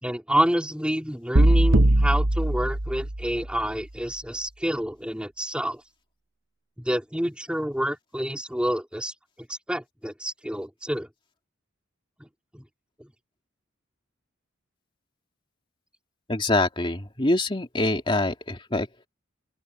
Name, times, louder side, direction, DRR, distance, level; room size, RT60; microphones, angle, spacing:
voice 1, 0.0-5.8 6.8-9.1 9.5-11.1 12.2-12.3 12.5-12.6, equal, 5° right, 4.2 m, -28 dB
sound 1, 1.4-3.5, right 1 dB, 70° right, 1.4 m, -20 dB
voice 2, 16.3-19.1, left 2 dB, 25° left, 2.6 m, -25 dB
open air
head